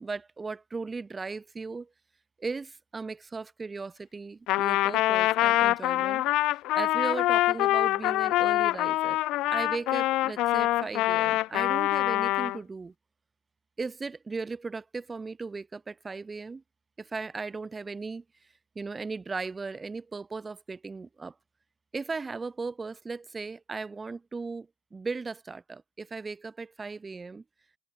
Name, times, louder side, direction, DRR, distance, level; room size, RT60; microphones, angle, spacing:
voice 1, 0.0-1.9 2.4-6.2 6.8-9.2 9.5-12.9 13.8-16.6 17.0-18.2 18.8-21.3 21.9-27.4, right 4 dB, 20° right, 2.0 m, -37 dB
Trumpet, 4.5-12.6, left 17 dB, 65° left, 1.2 m, -25 dB
cardioid pair, 125°, 0 cm